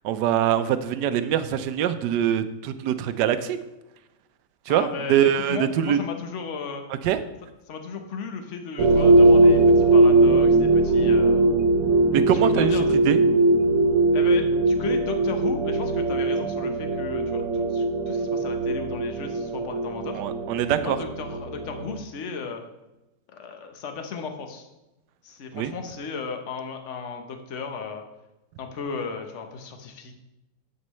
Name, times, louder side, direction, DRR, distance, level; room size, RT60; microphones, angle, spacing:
voice 1, 0.0-3.6 4.7-6.0 6.9-7.2 12.1-12.7 13.1-13.2 20.1-21.0 25.5-25.7, right 10 dB, 75° right, 11 dB, 1.2 m, -23 dB
voice 2, 4.7-6.9 7.7-11.4 12.5-13.0 14.1-20.2 20.8-22.6 23.3-24.7 25.2-28.0 28.6-30.1, left 5 dB, 50° left, 5 dB, 1.2 m, -35 dB
sound 1, 8.8-21.9, right 2 dB, 60° right, 1.5 m, -20 dB
11.0 x 7.8 x 3.1 m, 0.97 s
omnidirectional pair, 1.9 m